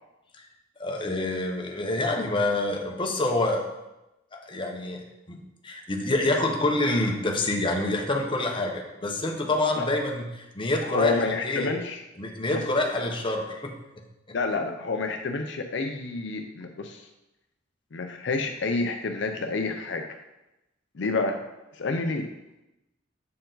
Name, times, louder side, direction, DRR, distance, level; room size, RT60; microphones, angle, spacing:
voice 1, 0.8-3.6 4.3-11.7 12.2-13.8 14.3-14.4, left 2 dB, 25° left, 1 dB, 0.9 m, -27 dB
voice 2, 10.8-12.0 12.5-12.6 14.3-17.0 17.9-20.1 20.9-21.4 21.8-22.3, left 3 dB, 70° left, 5 dB, 0.5 m, -29 dB
7.5 x 4.5 x 3.9 m, 0.95 s
head